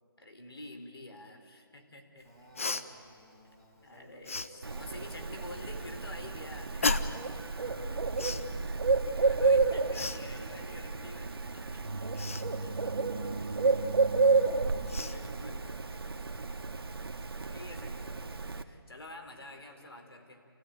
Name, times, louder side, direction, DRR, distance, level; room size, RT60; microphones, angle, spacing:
voice 1, 0.2-2.3 3.8-7.5 9.0-12.3 12.6-13.0 14.8-15.8 17.5-20.5, left 1 dB, 80° left, 5 dB, 3.8 m, -49 dB
voice 2, 2.2-5.8 7.5-9.4 9.9-10.7 12.4-16.2 19.5-20.0, right 1 dB, 5° left, -5 dB, 1.5 m, -55 dB
Cough, 2.6-2.8 4.2-4.5 6.8-7.3 8.1-8.4 9.9-10.2 12.1-12.4 14.3-14.4 14.9-15.2, left 3 dB, 35° left, 0.7 m, -32 dB
Bird, 4.6-18.6, right 4 dB, 75° right, 1.3 m, -31 dB
29.0 x 16.0 x 9.1 m, 2.5 s
hypercardioid pair, 175°, 13 cm